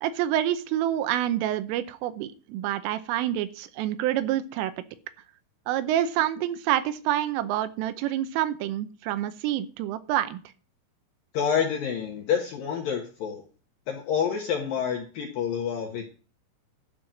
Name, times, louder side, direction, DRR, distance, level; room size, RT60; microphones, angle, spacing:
voice 1, 0.0-4.7 5.7-10.4, right 12 dB, 80° right, 12 dB, 3.3 m, -27 dB
voice 2, 11.3-13.4 13.9-16.1, left 7 dB, 70° left, 2 dB, 2.2 m, -28 dB
12.0 x 5.5 x 7.6 m, 0.37 s
omnidirectional pair, 5.9 m